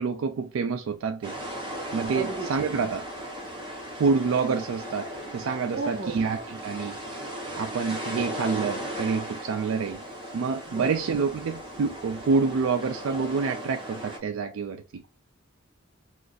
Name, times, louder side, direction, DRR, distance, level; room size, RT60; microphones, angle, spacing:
voice 1, 0.0-1.4 1.9-3.1 3.9-7.0 7.6-10.0 10.3-15.0, right 5 dB, 75° right, 0.3 m, -27 dB
sound 1, 1.2-14.2, equal, 25° right, 0.9 m, -37 dB
voice 2, 2.1-2.5 5.7-6.2 10.7-11.1, right 4 dB, 55° right, 0.7 m, -33 dB
2.5 x 2.4 x 3.8 m
head